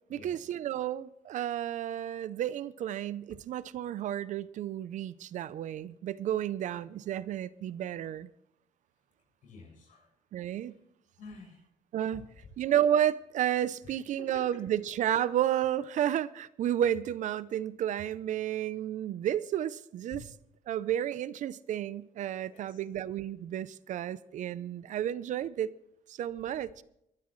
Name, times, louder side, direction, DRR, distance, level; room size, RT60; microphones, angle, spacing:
voice 1, 0.1-8.3 10.3-10.7 11.9-12.3 12.6-20.2 20.7-25.7 26.1-26.8, right 11 dB, 60° right, 0.6 m, -31 dB
voice 2, 9.4-10.1 11.2-11.6 12.1-12.5 13.8-14.5 20.1-20.2 22.4-22.8, left 4 dB, 70° left, 6.8 m, -49 dB
24.0 x 12.5 x 3.2 m
cardioid pair, 150°, 14 cm